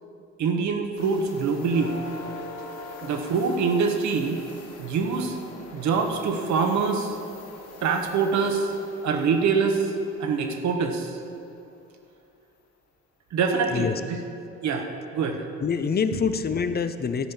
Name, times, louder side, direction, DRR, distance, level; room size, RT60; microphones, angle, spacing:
voice 1, 0.4-1.9 3.0-4.4 4.8-5.4 5.7-7.2 7.8-8.7 9.0-9.9 10.2-11.2 13.3-14.2 14.6-15.4, right 5 dB, 65° right, 5 dB, 1.4 m, -24 dB
sound 1, 1.0-11.6 13.6-13.7 14.3-14.4, left 3 dB, 55° left, 2.3 m, -43 dB
voice 2, 15.6-17.3, left 6 dB, 30° left, 10 dB, 0.7 m, -26 dB
13.5 x 5.4 x 7.4 m, 2.5 s
supercardioid pair, 75°, 30 cm